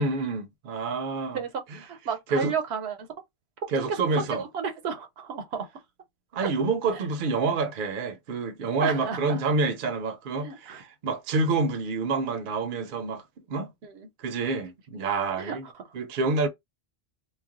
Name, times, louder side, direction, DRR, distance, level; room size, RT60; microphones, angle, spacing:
voice 1, 0.0-1.4 2.3-2.5 3.7-4.4 6.3-13.2 13.5-13.7 14.2-15.7 15.9-16.5, right 3 dB, 60° right, 0.7 m, -27 dB
voice 2, 1.3-3.1 4.1-5.7 6.4-6.5 8.8-9.4 10.4-10.8 13.8-14.1 15.4-15.6, right 6 dB, 85° right, 0.9 m, -32 dB
2.3 x 2.1 x 3.6 m
omnidirectional pair, 1.1 m